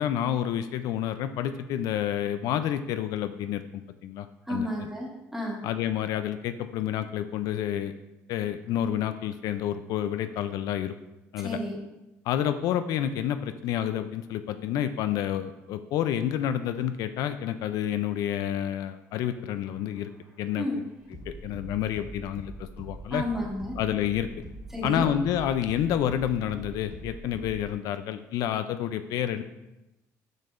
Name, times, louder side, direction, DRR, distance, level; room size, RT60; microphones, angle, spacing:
voice 1, 0.0-4.7 5.6-7.9 8.3-10.9 11.3-11.6 12.3-20.1 20.4-20.7 21.3-23.2 23.8-24.3 24.8-29.4, left 10 dB, 75° left, 10 dB, 0.3 m, -29 dB
voice 2, 4.4-5.6 11.4-11.8 20.5-20.8 23.1-23.8 24.7-25.1, left 1 dB, 5° right, -3 dB, 1.6 m, -31 dB
sound 1, 19.1-27.7, right 1 dB, 25° right, 2.1 m, -44 dB
6.6 x 6.4 x 2.5 m, 0.97 s
cardioid pair, 115°, 6 cm